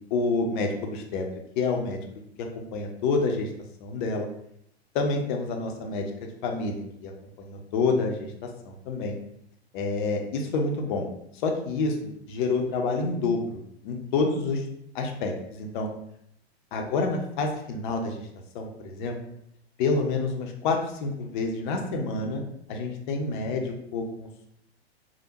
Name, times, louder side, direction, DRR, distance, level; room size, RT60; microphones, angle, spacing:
voice 1, 0.1-1.3 1.6-2.0 2.4-3.5 3.8-4.3 4.9-6.1 6.4-7.1 7.4-9.2 9.7-11.1 11.4-12.0 12.3-14.6 14.9-15.9 16.7-18.3 18.5-19.2 19.8-22.4 22.7-24.5, left 3 dB, 50° left, 3 dB, 0.6 m, -28 dB
3.3 x 2.1 x 2.9 m, 0.74 s
hypercardioid pair, 100°, 33 cm